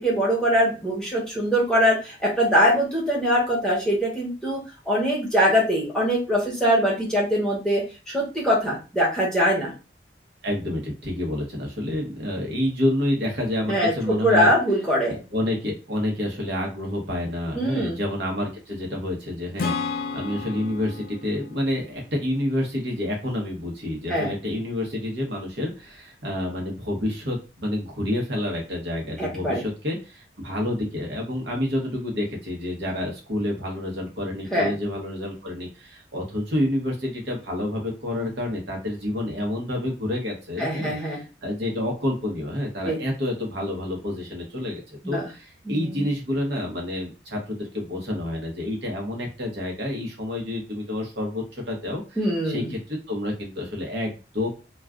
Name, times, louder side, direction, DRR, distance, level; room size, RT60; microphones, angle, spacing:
voice 1, 0.0-4.6 4.9-9.7 13.7-13.9 14.2-15.2 17.5-18.0 24.1-24.3 29.2-29.6 34.5-34.7 40.6-41.2 42.8-43.0 45.0-45.3 45.7-46.1 52.2-52.7, equal, 5° left, -4 dB, 0.9 m, -22 dB
voice 2, 10.4-14.5 15.1-54.5, left 1 dB, 70° right, 0 dB, 0.9 m, -28 dB
Acoustic guitar / Strum, 19.6-23.2, left 4 dB, 50° left, 0.4 m, -33 dB
2.3 x 2.3 x 3.5 m, 0.31 s
head